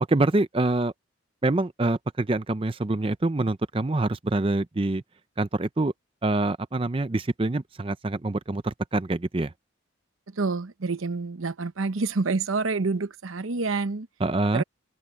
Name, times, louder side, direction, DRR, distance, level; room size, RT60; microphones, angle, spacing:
voice 1, 0.1-0.9 1.4-5.0 5.4-5.9 6.2-9.5 14.2-14.6, right 2 dB, 25° right, 0.5 m, -25 dB
voice 2, 10.3-14.1 14.5-14.6, right 3 dB, 85° right, 0.9 m, -27 dB
head